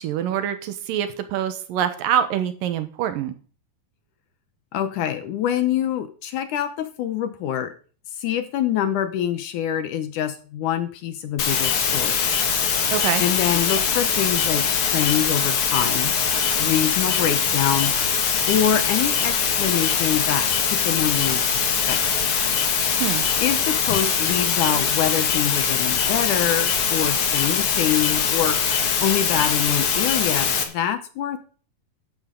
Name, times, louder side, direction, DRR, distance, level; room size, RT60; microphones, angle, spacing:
voice 1, 0.0-3.3 12.9-13.2 23.0-23.2, right 10 dB, 75° right, 10 dB, 2.6 m, -25 dB
voice 2, 4.7-7.7 8.2-12.2 13.2-16.2 16.5-18.0 18.5-22.0 23.4-28.6 29.0-31.4, left 10 dB, 70° left, 10 dB, 2.1 m, -25 dB
sound 1, 11.4-30.6, left 6 dB, 50° left, 1.8 m, -22 dB
13.0 x 10.5 x 3.8 m, 0.40 s
omnidirectional pair, 4.1 m